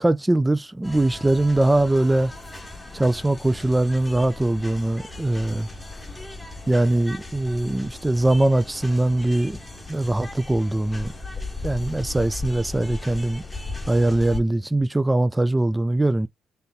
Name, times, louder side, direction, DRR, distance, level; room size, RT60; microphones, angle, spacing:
voice 1, 0.0-2.3 2.9-5.7 6.7-9.6 9.9-11.1 11.6-13.4 13.9-16.3, right 1 dB, 10° right, 0.4 m, -21 dB
sound 1, 0.8-14.4, left 2 dB, 10° left, 1.1 m, -37 dB
3.5 x 2.7 x 4.0 m
cardioid pair, 90°, 0 cm